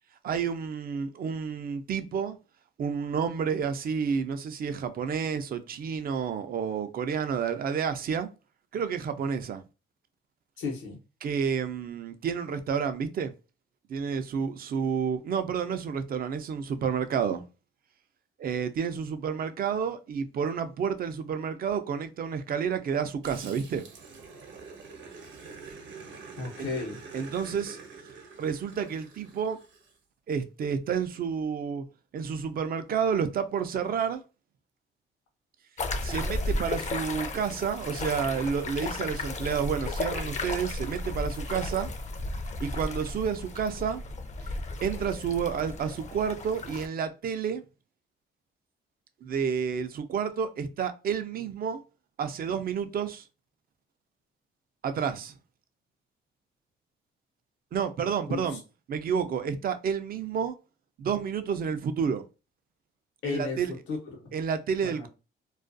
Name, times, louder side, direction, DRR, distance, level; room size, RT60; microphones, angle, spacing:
voice 1, 0.2-2.4 2.8-8.3 8.7-9.6 11.2-13.3 13.9-17.4 18.4-23.8 26.6-26.7 27.1-27.8 28.4-29.6 30.3-31.8 32.1-34.2 36.0-41.9 42.6-44.0 44.8-47.6 49.2-51.8 52.2-53.2 54.8-55.3 57.7-58.6 58.9-60.5 61.0-62.2 63.2-63.7 64.3-65.1, right 7 dB, 50° right, 0.4 m, -30 dB
voice 2, 10.6-11.0 26.4-27.0 58.3-58.6 63.2-64.3 64.8-65.1, left 4 dB, 80° left, 0.9 m, -34 dB
Growling, 23.2-29.9, right 4 dB, 70° right, 0.8 m, -46 dB
Guaíba River - Brazil, 35.8-46.9, left 2 dB, 35° left, 0.5 m, -34 dB
2.3 x 2.2 x 2.5 m
cardioid pair, 90°, 20 cm